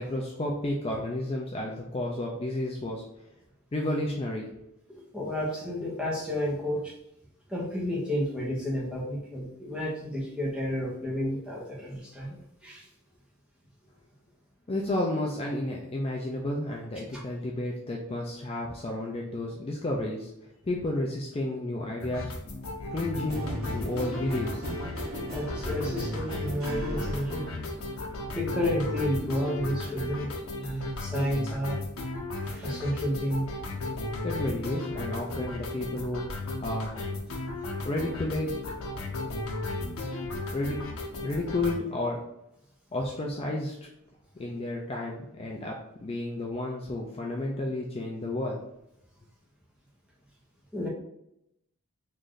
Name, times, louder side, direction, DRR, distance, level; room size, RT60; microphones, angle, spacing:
voice 1, 0.0-3.0 3.7-4.6 14.7-20.3 20.6-22.3 22.9-24.8 34.2-36.2 36.6-36.9 37.8-38.7 40.5-40.8 41.2-42.2 42.9-43.9 44.4-45.8 46.0-48.6, left 1 dB, 25° left, -1 dB, 0.4 m, -31 dB
voice 2, 5.1-6.9 7.5-12.8 25.3-27.4 28.3-31.8 32.4-33.5 50.7-50.9, equal, 5° right, -5 dB, 0.9 m, -31 dB
sound 1, 22.0-41.8, left 2 dB, 80° left, 0.7 m, -35 dB
sound 2, 23.3-29.2, right 1 dB, 75° right, 0.8 m, -38 dB
3.2 x 2.6 x 3.8 m, 0.81 s
head